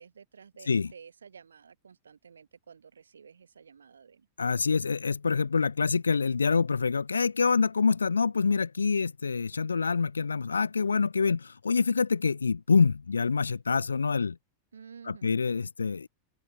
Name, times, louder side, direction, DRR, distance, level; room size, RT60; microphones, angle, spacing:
voice 1, 0.0-4.3 14.7-15.4, right 6 dB, 70° right, 3.1 m, -52 dB
voice 2, 4.4-14.4 15.1-16.1, left 5 dB, 75° left, 0.3 m, -26 dB
open air
figure-of-eight pair, 90°, 0 cm